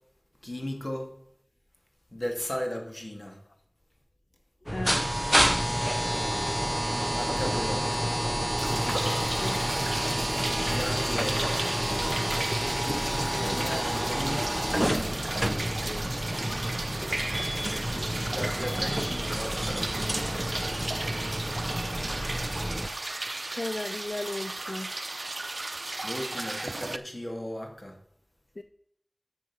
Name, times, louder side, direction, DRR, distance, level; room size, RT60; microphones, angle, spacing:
voice 1, 0.4-1.1 2.1-3.4 7.1-7.9 10.6-11.7 13.3-14.6 18.2-19.9 20.2-20.7 26.0-28.0, left 1 dB, 50° left, 2 dB, 2.5 m, -36 dB
voice 2, 4.7-5.0 9.4-9.6 13.3-13.6 15.8-16.1 23.4-24.9 28.6-28.7, left 2 dB, 70° left, 10 dB, 0.4 m, -35 dB
sound 1, 4.7-22.9, equal, 15° right, 0.6 m, -29 dB
Singing, 7.8-20.2, equal, 5° left, 1.2 m, -45 dB
sound 2, 8.6-27.0, right 2 dB, 75° right, 0.5 m, -35 dB
11.0 x 6.1 x 5.6 m, 0.71 s
wide cardioid pair, 45°, 0 cm